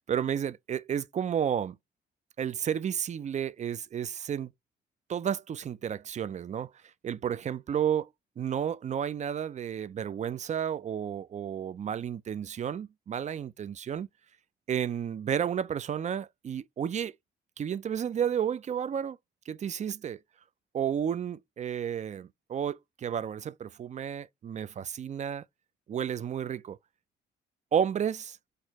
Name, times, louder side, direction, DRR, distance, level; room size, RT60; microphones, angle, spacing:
voice 1, 0.0-1.8 2.4-4.5 5.1-6.7 7.0-8.1 8.4-14.1 14.7-17.1 17.6-19.2 19.5-20.2 20.7-25.4 25.9-26.8 27.7-28.4, right 8 dB, 35° right, 0.4 m, -32 dB
4.4 x 2.5 x 4.6 m
cardioid pair, 90°, 20 cm